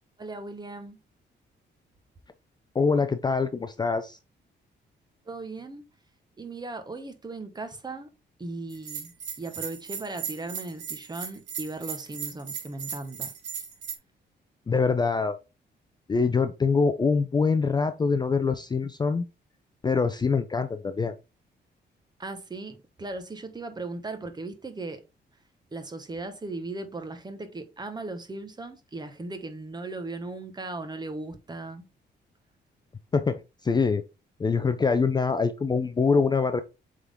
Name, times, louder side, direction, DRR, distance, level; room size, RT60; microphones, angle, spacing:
voice 1, 0.2-1.0 5.3-5.8 6.4-8.1 8.4-9.1 9.4-13.3 22.2-25.0 25.7-31.8, right 2 dB, 20° right, 1.1 m, -37 dB
voice 2, 2.7-4.2 14.7-15.4 16.1-19.2 19.8-21.1 33.1-34.0 34.4-36.6, left 4 dB, 20° left, 0.4 m, -24 dB
Bell, 8.7-13.9, right 7 dB, 80° right, 1.6 m, -37 dB
7.8 x 3.8 x 3.5 m
cardioid pair, 130°, 19 cm